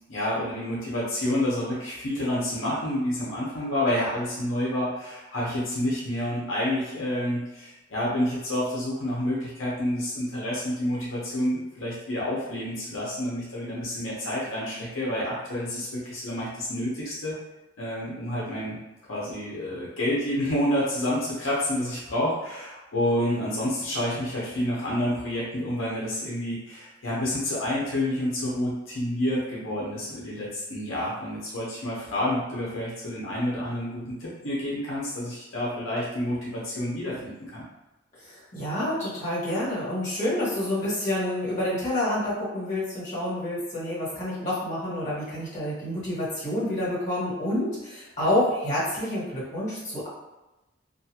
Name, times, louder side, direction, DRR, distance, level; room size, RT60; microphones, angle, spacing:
voice 1, 0.1-17.3 17.8-18.8 19.1-37.6, left 1 dB, 85° left, -6 dB, 0.8 m, -29 dB
voice 2, 38.2-50.1, left 1 dB, 40° left, -8 dB, 1.4 m, -28 dB
2.6 x 2.4 x 2.8 m, 1.0 s
head